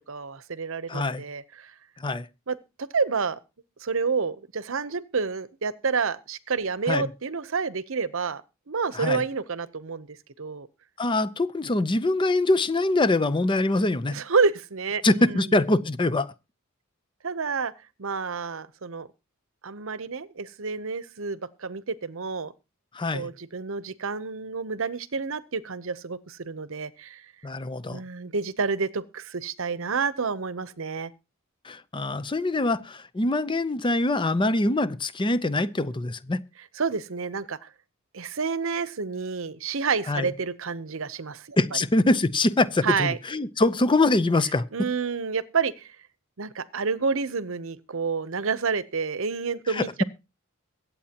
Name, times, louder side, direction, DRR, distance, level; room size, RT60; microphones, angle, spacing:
voice 1, 0.1-1.7 2.5-3.4 3.8-8.4 8.7-10.7 14.1-15.5 17.2-17.7 18.0-19.1 19.6-22.5 23.1-27.2 27.9-31.1 36.8-37.7 38.1-41.6 42.8-43.2 44.7-45.9 46.4-50.0, right 5 dB, 65° right, 0.8 m, -29 dB
voice 2, 0.9-1.2 2.0-2.3 6.9-7.1 8.9-9.2 11.0-14.2 15.0-16.3 22.9-23.3 27.4-28.0 31.6-36.4 40.1-40.3 41.6-44.6 49.7-50.0, left 2 dB, 20° left, 0.6 m, -24 dB
23.5 x 8.5 x 2.9 m
head